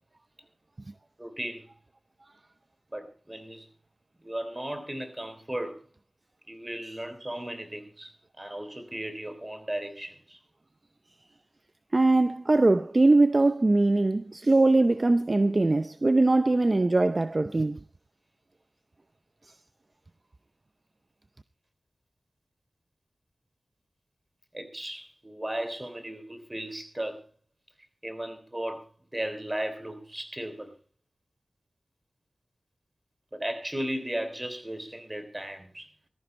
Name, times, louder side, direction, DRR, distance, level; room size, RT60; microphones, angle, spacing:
voice 1, 1.2-1.7 2.9-3.6 4.2-5.8 6.5-8.1 8.4-10.4 24.5-27.2 28.0-28.9 29.1-30.7 33.3-35.9, right 1 dB, 25° right, 3.4 m, -35 dB
voice 2, 11.9-17.8, right 2 dB, 45° right, 0.6 m, -22 dB
19.0 x 14.0 x 3.3 m
wide cardioid pair, 50°, 0 cm